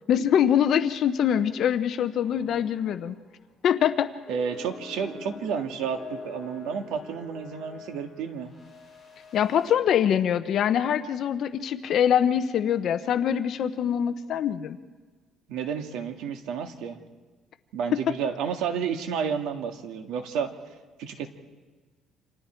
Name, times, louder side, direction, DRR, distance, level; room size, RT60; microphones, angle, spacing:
voice 1, 0.1-3.2 3.6-4.1 9.3-14.8 17.9-18.0, left 9 dB, 45° left, 10 dB, 0.8 m, -24 dB
sound 1, 2.2-3.0 3.3-3.5 4.3-9.7, left 3 dB, ahead, 7.4 m, -44 dB
voice 2, 4.3-8.5 15.5-17.0 17.7-20.5 21.0-21.3, right 7 dB, 75° right, 6 dB, 1.9 m, -31 dB
29.0 x 26.5 x 4.5 m, 1.3 s
cardioid pair, 170°, 0 cm